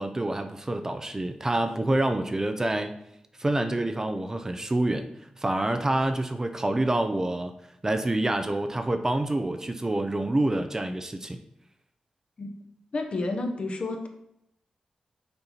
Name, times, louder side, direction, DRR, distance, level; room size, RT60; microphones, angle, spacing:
voice 1, 0.0-2.9 3.4-5.1 5.4-7.5 7.8-11.4, right 1 dB, 25° right, 8 dB, 0.5 m, -27 dB
voice 2, 12.9-14.1, left 2 dB, 55° left, 4 dB, 1.0 m, -30 dB
6.6 x 4.4 x 4.1 m, 0.77 s
wide cardioid pair, 95°, 2 cm